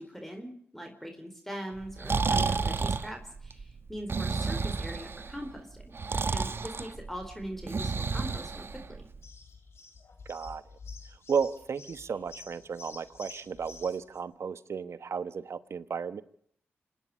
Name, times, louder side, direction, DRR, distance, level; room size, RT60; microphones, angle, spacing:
voice 1, 0.0-6.0 6.3-9.1, equal, 5° left, 5 dB, 4.2 m, -41 dB
Breathing, 1.8-9.2, right 4 dB, 55° right, 1.4 m, -31 dB
sound 1, 9.2-14.2, left 4 dB, 65° left, 4.7 m, -49 dB
voice 2, 10.3-10.6 11.3-16.2, right 6 dB, 70° right, 14 dB, 1.2 m, -33 dB
26.5 x 10.5 x 9.7 m, 0.64 s
cardioid pair, 45°, 5 cm